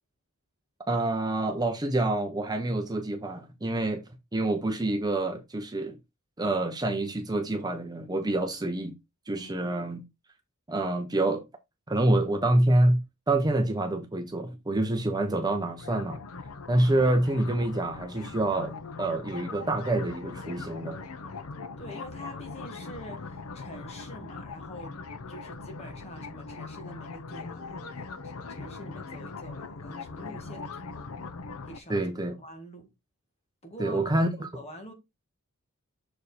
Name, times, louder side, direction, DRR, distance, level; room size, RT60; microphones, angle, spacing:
voice 1, 0.9-4.0 4.3-6.0 6.4-8.9 9.3-10.0 10.7-11.5 11.9-16.2 16.7-21.0 31.9-32.4 33.8-34.5, right 1 dB, 20° right, 0.7 m, -27 dB
voice 2, 9.4-9.7 21.8-25.0 25.3-31.1 31.7-32.1 32.4-32.9 33.6-34.0 34.5-34.9, equal, 30° left, 1.9 m, -46 dB
sound 1, 15.8-31.8, left 4 dB, 80° left, 0.7 m, -41 dB
6.6 x 4.6 x 4.1 m
head